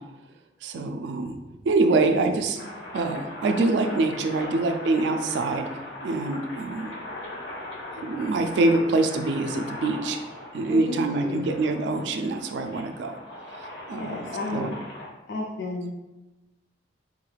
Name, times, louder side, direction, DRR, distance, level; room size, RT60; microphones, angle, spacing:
voice 1, 0.6-1.4 1.7-2.6 2.9-5.7 6.0-6.9 8.0-10.2 10.5-13.2 13.9-14.2 14.5-14.7, right 2 dB, 75° right, 6 dB, 0.3 m, -25 dB
voice 2, 1.9-2.2 10.7-11.6 13.9-14.8 15.3-15.9, left 2 dB, 65° left, -1 dB, 0.4 m, -33 dB
sound 1, 2.6-15.1, left 1 dB, 85° left, 0.9 m, -40 dB
3.7 x 2.3 x 3.2 m, 1.1 s
head